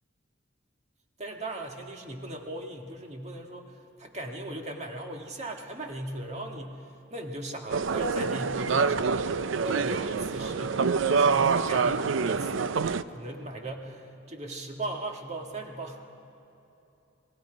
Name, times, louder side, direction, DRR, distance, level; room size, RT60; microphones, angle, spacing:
voice 1, 1.2-12.8 13.1-16.2, right 1 dB, 35° right, 2 dB, 1.8 m, -38 dB
sound 1, 7.7-13.0, right 5 dB, 80° right, 0.5 m, -26 dB
29.5 x 20.0 x 5.1 m, 2.9 s
head